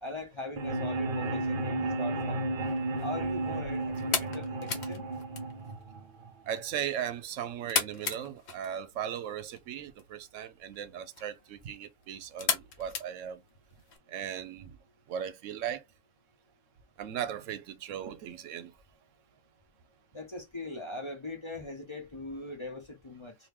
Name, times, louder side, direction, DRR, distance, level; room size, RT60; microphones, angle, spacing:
voice 1, 0.0-2.4 3.0-5.1 20.1-23.3, left 1 dB, 25° left, 0.8 m, -40 dB
sound 1, 0.6-6.6, right 2 dB, 50° right, 0.7 m, -33 dB
sound 2, 2.6-14.0, left 5 dB, 60° left, 1.0 m, -38 dB
voice 2, 6.5-13.4 14.1-14.8 15.1-15.8 17.0-18.7, right 9 dB, 80° right, 0.9 m, -37 dB
3.0 x 2.5 x 3.4 m
omnidirectional pair, 1.3 m